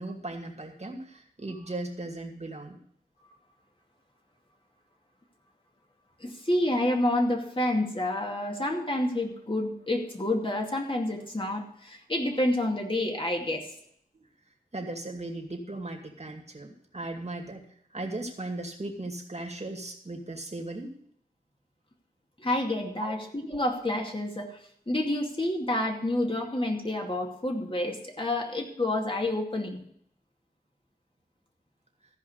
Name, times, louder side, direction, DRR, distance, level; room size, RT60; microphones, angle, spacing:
voice 1, 0.0-2.8 14.7-17.7 17.9-20.9 23.0-23.2, right 2 dB, 45° right, 2 dB, 2.3 m, -37 dB
voice 2, 6.2-13.7 22.4-24.6 24.9-29.8, left 1 dB, 35° left, 1 dB, 2.4 m, -29 dB
14.5 x 5.3 x 8.2 m, 0.66 s
wide cardioid pair, 50°, 16 cm